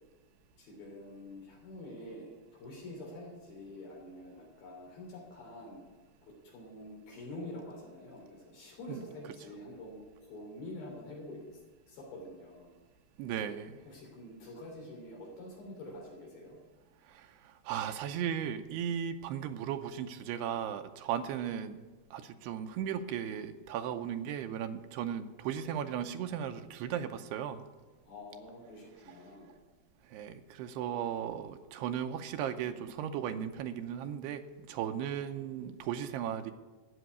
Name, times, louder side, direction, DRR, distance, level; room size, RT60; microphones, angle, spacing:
voice 1, 0.6-5.8 6.2-11.6 11.9-12.7 13.3-13.5 13.8-16.6 28.0-29.5, left 1 dB, 60° left, -2 dB, 4.8 m, -47 dB
voice 2, 13.2-13.7 17.1-21.8 22.1-27.6 30.1-36.5, right 9 dB, 80° right, 8 dB, 2.6 m, -36 dB
14.0 x 6.9 x 9.4 m, 1.3 s
omnidirectional pair, 5.0 m